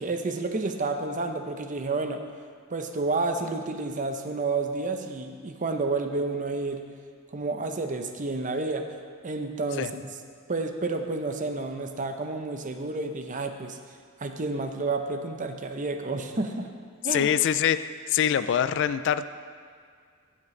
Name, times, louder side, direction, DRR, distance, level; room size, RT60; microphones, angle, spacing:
voice 1, 0.0-2.2 2.7-6.8 7.3-8.9 9.2-10.1 10.5-13.8 14.2-16.7 17.0-17.3, right 3 dB, 35° right, 6 dB, 0.7 m, -30 dB
voice 2, 17.1-17.8 18.1-19.2, left 9 dB, 55° left, 13 dB, 0.3 m, -24 dB
14.0 x 7.3 x 3.2 m, 2.1 s
head